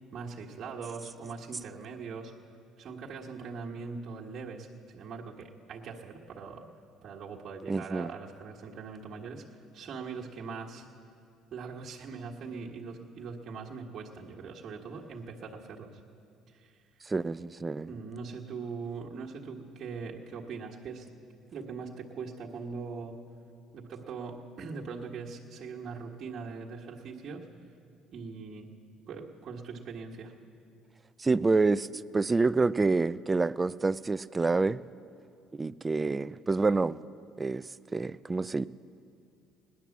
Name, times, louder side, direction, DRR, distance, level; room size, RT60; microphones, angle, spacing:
voice 1, 0.1-2.3 2.8-6.7 7.0-10.8 11.5-16.0 16.5-16.8 17.9-21.1 21.5-23.2 23.7-27.5 28.1-28.7 29.1-30.3, right 5 dB, 50° right, 1.5 m, -41 dB
voice 2, 7.7-8.1 17.1-17.9 31.2-31.9 32.1-34.8 35.5-37.0 37.4-37.7 37.9-38.6, right 3 dB, 20° right, 0.3 m, -27 dB
17.5 x 11.0 x 7.2 m
supercardioid pair, 95°, 0 cm